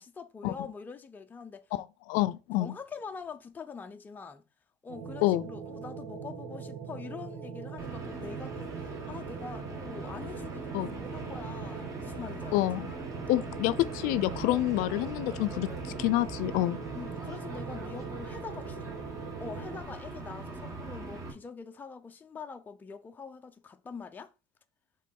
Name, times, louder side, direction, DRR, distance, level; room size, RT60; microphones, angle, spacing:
voice 1, 0.0-1.6 2.6-4.4 4.8-12.6 14.4-14.9 16.2-18.9 19.4-24.3, left 5 dB, 10° left, 0.5 m, -44 dB
voice 2, 1.7-2.7 5.2-5.4 10.7-10.9 12.5-12.9 13.3-15.7 16.0-16.8, left 16 dB, 70° left, 0.5 m, -28 dB
sound 1, 4.9-19.8, right 6 dB, 85° right, 1.8 m, -42 dB
sound 2, 7.8-21.3, right 2 dB, 20° right, 1.3 m, -41 dB
5.3 x 3.6 x 5.3 m
cardioid pair, 175°, 14 cm